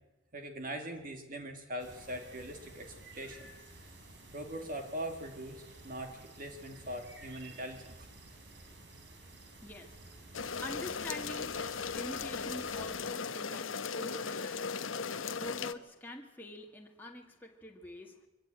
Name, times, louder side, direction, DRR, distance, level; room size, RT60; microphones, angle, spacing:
voice 1, 0.3-3.5 4.3-8.1, right 1 dB, 45° right, 5 dB, 2.3 m, -41 dB
sound 1, 1.8-13.1, right 2 dB, 60° right, 3.8 m, -53 dB
voice 2, 9.6-11.6 11.9-14.9 15.3-18.2, left 1 dB, 10° left, 0 dB, 1.7 m, -46 dB
sound 2, 10.3-15.7, left 5 dB, 80° left, 1.0 m, -37 dB
23.5 x 17.0 x 8.9 m, 1.0 s
head